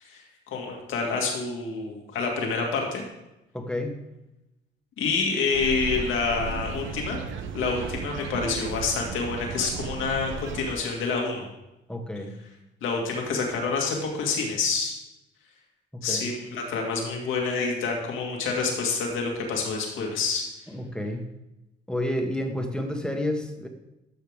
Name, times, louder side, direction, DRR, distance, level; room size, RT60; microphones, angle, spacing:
voice 1, 0.1-3.0 5.0-7.2 7.5-11.5 12.8-14.9 16.0-20.4, left 4 dB, 85° left, 0 dB, 2.1 m, -28 dB
voice 2, 3.5-4.0 11.9-12.4 15.9-16.3 20.7-21.3 21.9-23.7, left 1 dB, 5° left, 3 dB, 1.4 m, -30 dB
sound 1, 5.5-10.7, right 5 dB, 75° right, 0.8 m, -35 dB
13.0 x 5.8 x 3.6 m, 0.94 s
cardioid pair, 90°, 20 cm